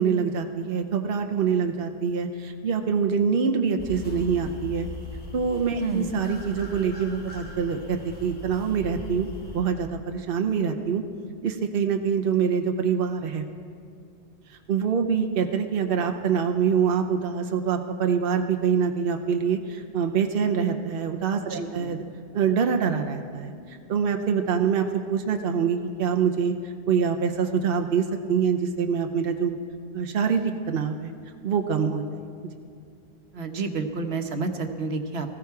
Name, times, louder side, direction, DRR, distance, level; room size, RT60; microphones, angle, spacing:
voice 1, 0.0-4.9 5.3-9.3 9.5-11.0 11.4-13.4 14.5-22.0 22.3-29.6 29.9-31.1 31.4-32.2, right 6 dB, 65° right, 5 dB, 0.9 m, -25 dB
sound 1, 3.8-9.6, left 2 dB, 65° left, 3.3 m, -40 dB
voice 2, 21.5-21.9 33.3-35.3, right 3 dB, 90° right, 5 dB, 1.3 m, -30 dB
19.0 x 15.0 x 4.7 m, 2.3 s
omnidirectional pair, 1.0 m